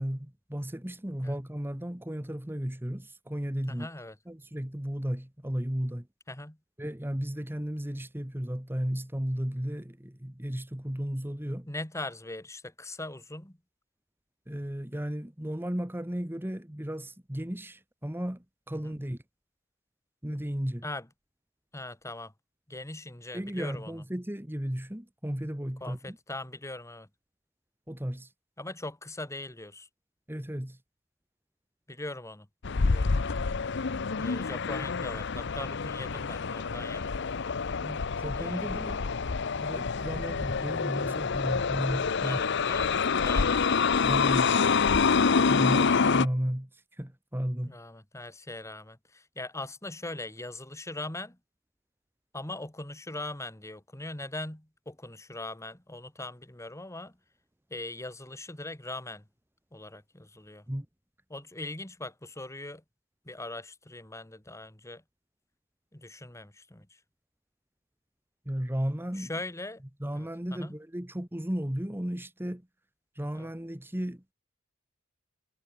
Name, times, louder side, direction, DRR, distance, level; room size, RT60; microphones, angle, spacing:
voice 1, 0.0-3.9 4.3-6.1 6.8-11.7 14.5-19.2 20.2-20.9 23.3-26.2 27.9-28.3 30.3-30.8 37.8-39.0 39.3-42.4 44.0-44.5 45.5-47.8 60.7-60.9 68.4-69.3 70.0-72.7 73.1-74.3, equal, 10° right, 1.4 m, -34 dB
voice 2, 3.7-4.2 6.3-6.6 11.7-13.6 18.8-19.0 20.8-21.1 21.7-22.3 22.7-24.0 25.8-27.1 28.6-29.9 31.9-32.5 32.8-33.3 34.2-37.0 38.3-38.9 42.2-43.9 47.6-51.4 52.3-57.1 57.7-59.2 59.7-60.6 61.3-62.8 63.3-65.0 65.9-66.9 69.2-69.8 70.1-70.7 73.3-73.5, left 2 dB, 15° left, 2.1 m, -40 dB
sound 1, 32.6-46.3, left 5 dB, 60° left, 0.7 m, -27 dB
head